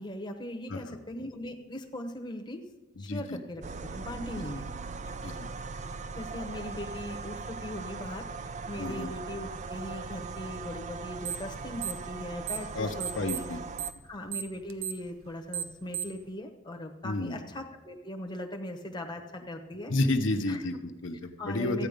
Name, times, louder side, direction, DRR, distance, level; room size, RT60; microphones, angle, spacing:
voice 1, 0.0-2.6 3.0-4.7 5.0-5.1 6.1-13.5 14.0-19.9 20.5-20.6 21.4-21.9, left 1 dB, 20° left, 3 dB, 0.9 m, -39 dB
voice 2, 3.0-3.4 4.4-4.5 5.2-5.5 8.8-9.1 12.7-13.6 17.0-17.4 19.9-21.9, left 2 dB, 65° left, 5 dB, 0.8 m, -31 dB
sound 1, 3.6-13.9, right 4 dB, 35° right, 0.4 m, -39 dB
sound 2, 11.2-11.5 11.8-12.7 13.0-16.2, right 11 dB, 85° right, 0.8 m, -35 dB
14.0 x 9.0 x 5.2 m, 1.1 s
head